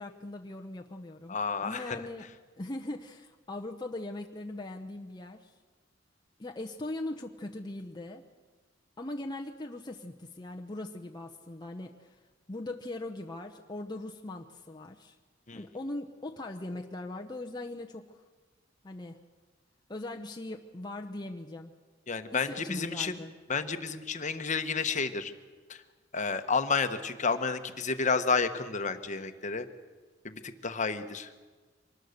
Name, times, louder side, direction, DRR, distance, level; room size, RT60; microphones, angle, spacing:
voice 1, 0.0-2.3 2.6-5.5 6.4-8.2 9.0-12.2 12.5-15.2 15.5-18.2 18.8-19.2 19.9-21.7 22.3-23.3, left 2 dB, 25° left, 2 dB, 0.9 m, -40 dB
voice 2, 1.3-2.0 15.5-15.6 22.1-23.2 23.5-25.3 25.7-25.8 26.1-29.7 30.2-31.3, left 4 dB, 40° left, 9 dB, 1.2 m, -31 dB
25.0 x 20.0 x 6.7 m, 1.4 s
head